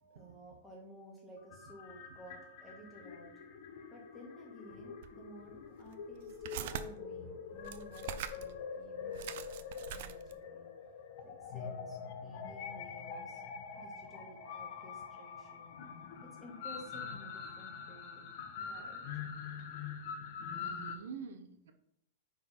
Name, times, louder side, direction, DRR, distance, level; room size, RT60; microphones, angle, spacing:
voice 1, 0.1-3.3 3.9-10.7 11.2-13.4 13.8-15.8 16.2-18.3 18.7-19.1 20.9-21.1, equal, 5° left, -2 dB, 1.9 m, -54 dB
sound 1, 1.4-21.0, left 6 dB, 50° left, 1.1 m, -45 dB
sound 2, 5.0-5.1 5.8-6.8 7.6-8.5 8.8-8.9 9.1-10.4, right 10 dB, 55° right, 0.6 m, -43 dB
voice 2, 20.6-21.7, right 7 dB, 75° right, 7 dB, 0.9 m, -47 dB
9.3 x 3.9 x 4.2 m, 0.72 s
supercardioid pair, 160°, 0 cm